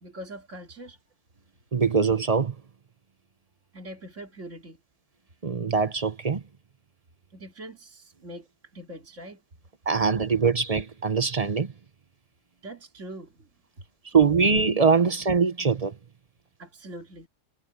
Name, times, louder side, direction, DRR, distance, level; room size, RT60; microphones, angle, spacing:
voice 1, 0.0-1.0 3.7-4.8 7.3-9.4 12.6-13.5 16.6-17.3, right 1 dB, 50° right, 2.9 m, -42 dB
voice 2, 1.7-2.5 5.4-6.4 9.9-11.7 14.1-16.0, right 5 dB, 35° right, 0.7 m, -22 dB
omnidirectional pair, 1.6 m